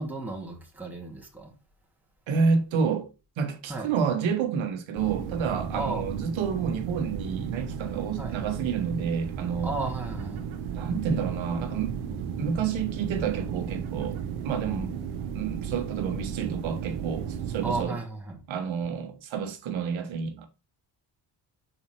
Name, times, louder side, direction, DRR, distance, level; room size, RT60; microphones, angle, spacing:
voice 1, 0.0-1.5 3.7-3.9 5.7-6.1 8.2-8.4 9.6-10.5 17.6-18.4, right 2 dB, 5° right, 2.2 m, -34 dB
voice 2, 2.3-3.1 3.4-9.7 10.7-12.0 12.4-14.2 14.4-15.0 15.3-17.9 18.5-20.5, right 6 dB, 75° right, 1.4 m, -29 dB
sound 1, 4.9-17.8, right 7 dB, 90° right, 1.0 m, -34 dB
5.7 x 4.3 x 4.4 m
supercardioid pair, 70°, 47 cm